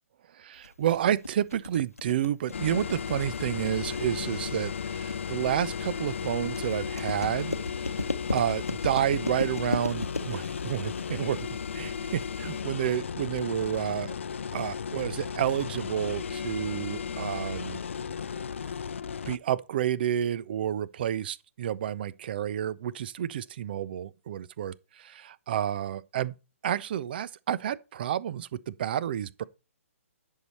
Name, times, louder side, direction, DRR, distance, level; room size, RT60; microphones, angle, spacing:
voice 1, 0.4-11.4 11.7-14.2 14.5-17.8 19.3-26.3 26.6-29.4, right 10 dB, 40° right, 0.6 m, -30 dB
sound 1, 0.6-12.6, left 2 dB, 85° left, 0.9 m, -36 dB
sound 2, 2.5-19.4, left 6 dB, 60° left, 0.5 m, -35 dB
11.0 x 6.6 x 4.3 m
figure-of-eight pair, 130°, 8 cm